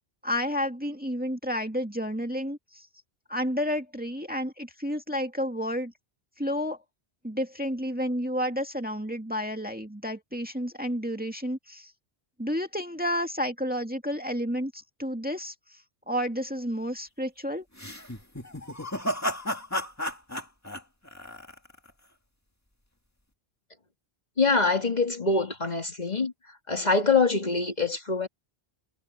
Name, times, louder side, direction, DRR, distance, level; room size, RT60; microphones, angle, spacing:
voice 1, 0.2-2.9 3.3-5.9 6.4-6.8 7.2-11.9 12.4-15.8 16.1-17.6, equal, 10° right, 2.1 m, -31 dB
sound 1, 17.8-21.9, equal, 15° left, 2.1 m, -33 dB
voice 2, 24.4-26.3 26.7-28.3, left 4 dB, 40° left, 2.3 m, -24 dB
omnidirectional pair, 1.1 m